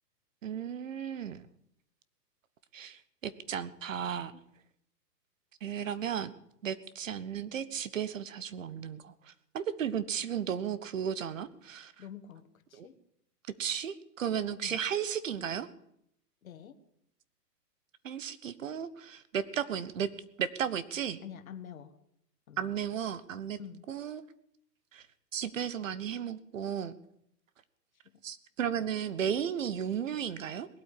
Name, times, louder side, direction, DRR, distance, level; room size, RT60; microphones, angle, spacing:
voice 1, 0.4-1.4 2.7-3.0 3.2-4.3 5.6-6.3 6.6-9.1 9.5-11.9 13.6-15.7 18.0-20.1 20.4-21.2 22.6-23.6 23.9-24.2 24.9-25.0 25.3-26.9 28.2-30.7, right 8 dB, 50° right, 16 dB, 1.1 m, -34 dB
voice 2, 12.0-12.4 12.7-13.0 14.6-14.8 16.4-16.8 21.2-21.9 22.5-22.7 23.6-23.8 28.1-28.2, left 8 dB, 55° left, 9 dB, 1.7 m, -47 dB
19.5 x 8.6 x 8.4 m, 0.76 s
hypercardioid pair, 175°, 50 cm